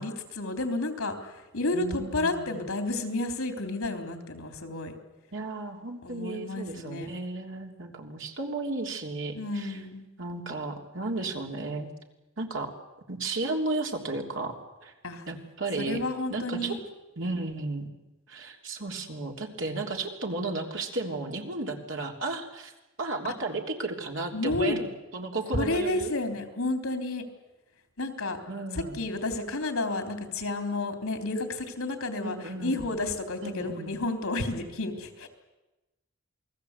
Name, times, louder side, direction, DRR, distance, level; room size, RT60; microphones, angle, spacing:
voice 1, 0.0-4.9 6.0-7.1 9.3-10.0 15.0-15.2 15.8-16.8 23.2-23.3 24.3-24.9 25.5-27.2 28.0-28.4 28.7-35.3, left 2 dB, 80° left, 6 dB, 3.6 m, -31 dB
voice 2, 1.7-2.6 5.3-9.8 10.2-11.9 12.4-12.7 13.1-14.6 14.8-14.9 15.3-16.0 16.3-16.8 17.2-17.9 18.3-22.7 23.0-26.1 28.5-29.1 32.2-32.9 33.4-34.0, right 2 dB, 60° right, 2 dB, 3.3 m, -34 dB
28.5 x 20.0 x 8.3 m, 1.0 s
head